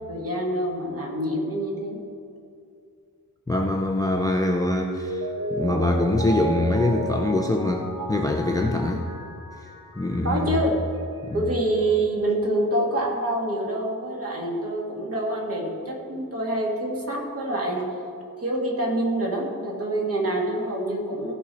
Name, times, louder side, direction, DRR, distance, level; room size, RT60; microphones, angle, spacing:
voice 1, 0.1-2.0 10.2-10.7 11.3-17.8 18.4-21.3, right 1 dB, 40° right, -2 dB, 2.1 m, -26 dB
voice 2, 3.5-5.3 5.5-9.0 10.0-10.6 11.3-11.4, left 2 dB, 10° left, 2 dB, 0.5 m, -24 dB
Mallet percussion, 4.9-10.4 10.7-10.8, right 2 dB, 80° right, 1.6 m, -33 dB
16.0 x 5.4 x 4.3 m, 2.4 s
wide cardioid pair, 125°, 35 cm